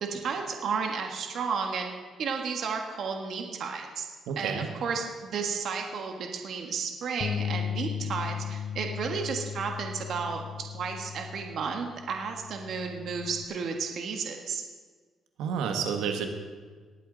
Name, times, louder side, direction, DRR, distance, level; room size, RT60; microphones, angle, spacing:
voice 1, 0.0-1.9 2.2-4.0 4.3-14.6, right 5 dB, 65° right, 3 dB, 1.6 m, -33 dB
voice 2, 4.3-4.7 15.4-16.3, right 6 dB, 90° right, 5 dB, 1.5 m, -30 dB
Bass guitar, 7.2-13.5, left 8 dB, 45° left, 0.6 m, -36 dB
19.5 x 8.4 x 4.0 m, 1.5 s
cardioid pair, 90°, 0 cm